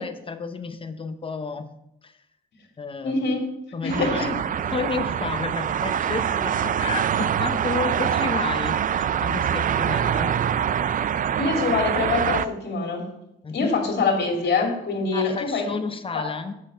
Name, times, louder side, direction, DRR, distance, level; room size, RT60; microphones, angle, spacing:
voice 1, 0.0-1.7 2.0-2.1 2.8-3.2 3.7-4.3 4.7-10.3 13.4-13.8 15.1-16.5, left 4 dB, 25° left, 9 dB, 0.8 m, -31 dB
voice 2, 3.0-3.6 3.8-4.3 11.4-13.1 13.5-15.7 16.1-16.3, left 4 dB, 60° left, 1 dB, 2.7 m, -24 dB
sound 1, 3.9-12.5, right 9 dB, 45° right, 0.4 m, -24 dB
7.6 x 6.6 x 5.2 m, 0.82 s
cardioid pair, 90°, 20 cm